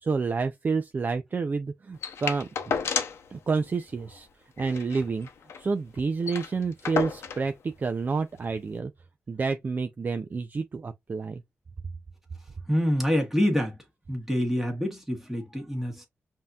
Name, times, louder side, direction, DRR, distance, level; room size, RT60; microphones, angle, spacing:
voice 1, 0.0-2.5 3.3-4.3 4.6-5.3 5.6-8.9 9.3-11.4, right 4 dB, 45° right, 0.5 m, -29 dB
sound 1, 2.0-3.3 3.6-3.7 4.0-4.2 4.6-5.7 6.0-6.1 6.2-7.5 8.4-8.5, left 6 dB, 90° left, 0.7 m, -32 dB
voice 2, 12.7-13.8 14.1-16.1, equal, 5° right, 1.5 m, -26 dB
5.3 x 2.8 x 2.4 m
cardioid pair, 70°, 4 cm